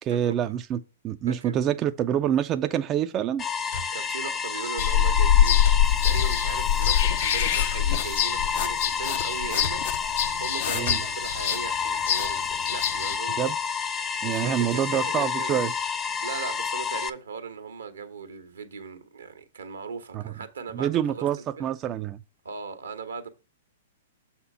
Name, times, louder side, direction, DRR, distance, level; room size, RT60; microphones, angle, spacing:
voice 1, 0.0-3.4 10.7-11.0 13.4-13.6 14.2-15.7 20.1-20.2 20.7-22.2, right 10 dB, 30° right, 0.4 m, -26 dB
sound 1, 3.4-17.1, left 6 dB, 20° left, 0.7 m, -30 dB
sound 2, 3.7-4.0 4.8-4.9 5.6-5.9 6.8-7.1 8.0-8.5 9.6-9.9 10.9-11.2, left 4 dB, 80° left, 2.2 m, -36 dB
voice 2, 3.9-9.8 10.4-13.6 14.3-15.6 16.2-21.2 21.6-21.7 22.4-23.3, right 5 dB, 85° right, 1.3 m, -38 dB
sound 3, 4.8-13.2, left 9 dB, 60° left, 0.6 m, -24 dB
6.6 x 4.3 x 5.5 m
hypercardioid pair, 120°, 0 cm